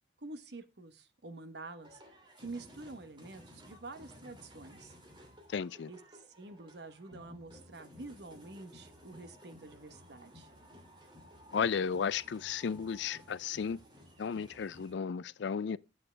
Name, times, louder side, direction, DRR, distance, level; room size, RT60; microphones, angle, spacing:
voice 1, 0.2-2.0 2.4-4.9 5.9-10.5, right 2 dB, 60° right, 1.1 m, -48 dB
sound 1, 1.8-14.9, equal, 25° right, 2.6 m, -56 dB
voice 2, 5.5-5.9 11.5-13.8 14.2-15.8, left 6 dB, 70° left, 0.4 m, -34 dB
10.0 x 7.9 x 3.3 m
head